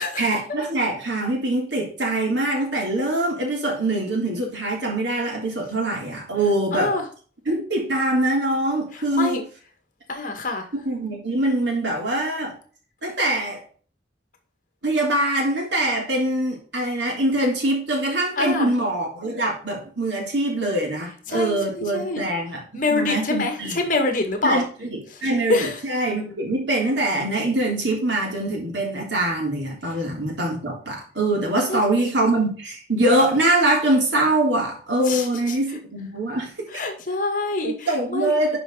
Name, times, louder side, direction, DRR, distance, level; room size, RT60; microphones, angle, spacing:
voice 1, 0.2-6.9 7.4-9.4 10.7-12.5 13.0-13.6 14.8-23.8 24.4-36.5 37.6-38.6, right 1 dB, 80° right, 0 dB, 3.3 m, -23 dB
voice 2, 6.7-7.0 9.1-9.4 10.1-10.7 18.4-18.7 21.3-22.3 22.7-24.6 25.1-25.2 25.5-25.8 31.7-31.8 35.1-35.6 36.7-38.3, left 3 dB, 45° left, 4 dB, 1.8 m, -25 dB
10.5 x 5.0 x 3.9 m, 0.42 s
head